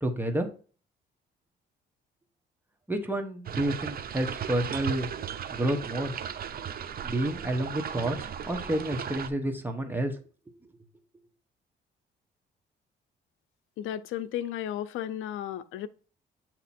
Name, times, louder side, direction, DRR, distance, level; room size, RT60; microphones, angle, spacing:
voice 1, 0.0-0.5 2.9-5.1 5.5-6.1 7.0-10.2, right 1 dB, 10° right, 1.1 m, -30 dB
sound 1, 3.5-9.3, right 8 dB, 50° right, 0.6 m, -36 dB
voice 2, 13.8-15.9, left 11 dB, 85° left, 0.5 m, -34 dB
8.3 x 3.0 x 4.2 m
cardioid pair, 90°, 20 cm